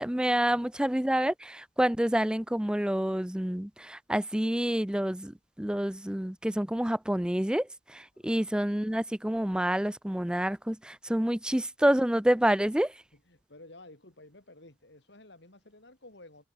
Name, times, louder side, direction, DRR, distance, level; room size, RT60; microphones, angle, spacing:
voice 1, 0.0-12.9, right 1 dB, 5° right, 0.4 m, -28 dB
voice 2, 8.1-8.5 11.5-11.6 13.1-16.5, left 2 dB, 60° left, 3.4 m, -53 dB
open air
head